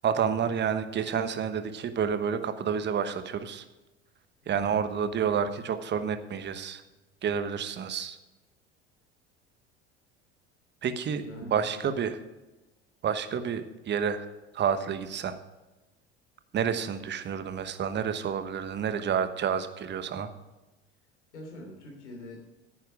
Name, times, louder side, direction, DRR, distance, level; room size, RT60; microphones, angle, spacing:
voice 1, 0.0-3.6 4.5-6.8 7.2-8.2 10.8-11.2 11.5-12.2 13.0-14.2 14.5-15.4 16.5-20.3, right 7 dB, 30° right, 11 dB, 1.1 m, -29 dB
voice 2, 11.2-11.9 21.3-22.4, left 1 dB, 85° left, 0 dB, 3.0 m, -44 dB
10.5 x 9.3 x 4.9 m, 1.1 s
figure-of-eight pair, 70°, 34 cm